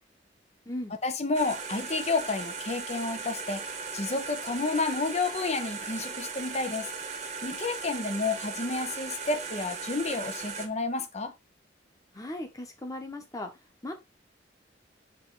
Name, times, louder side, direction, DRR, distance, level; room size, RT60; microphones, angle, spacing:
voice 1, 1.0-6.9 7.4-11.3, left 3 dB, 40° left, 0.8 m, -30 dB
sound 1, 1.3-10.7, right 5 dB, 40° right, 1.1 m, -38 dB
voice 2, 12.1-13.5 13.8-13.9, left 1 dB, 20° left, 1.3 m, -37 dB
6.8 x 3.8 x 3.9 m
head